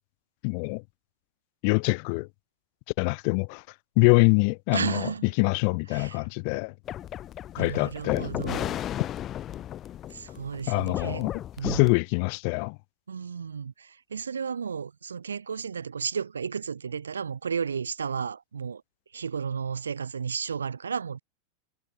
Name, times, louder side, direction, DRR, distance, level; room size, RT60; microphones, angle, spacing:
voice 1, 0.4-0.8 1.6-2.3 3.0-3.6 4.0-5.0 5.4-6.7 7.5-8.3 10.7-11.3 11.6-12.8, left 37 dB, 45° left, 1.3 m, -24 dB
voice 2, 4.7-5.3 5.9-6.3 7.6-8.8 10.1-11.3 11.6-11.9 13.1-18.8 19.1-21.2, right 6 dB, 70° right, 3.5 m, -33 dB
sound 1, 6.9-11.9, left 11 dB, 30° left, 2.3 m, -35 dB
figure-of-eight pair, 90°, 0 cm